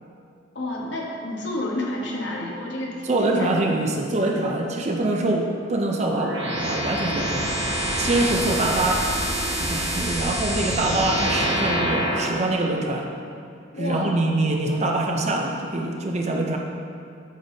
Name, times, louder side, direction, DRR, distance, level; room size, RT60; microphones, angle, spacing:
voice 1, 0.5-3.6 13.7-14.1, left 1 dB, 60° left, -2 dB, 1.0 m, -30 dB
voice 2, 3.0-7.5 8.0-9.1 9.6-13.1 13.8-16.6, right 2 dB, 35° right, 1 dB, 0.5 m, -24 dB
sound 1, 6.0-12.4, right 1 dB, 60° right, 1.5 m, -26 dB
8.7 x 5.4 x 2.7 m, 2.4 s
head